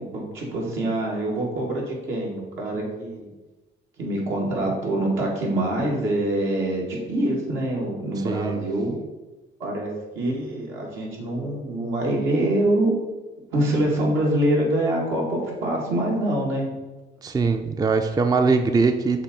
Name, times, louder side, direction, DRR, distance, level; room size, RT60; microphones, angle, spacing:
voice 1, 0.1-3.3 4.0-8.9 9.6-12.9 13.5-16.7, right 1 dB, 80° right, -3 dB, 1.9 m, -25 dB
voice 2, 8.2-8.6 17.2-19.2, right 4 dB, 20° right, 6 dB, 0.4 m, -21 dB
6.8 x 2.7 x 5.1 m, 1.1 s
cardioid pair, 90°, 20 cm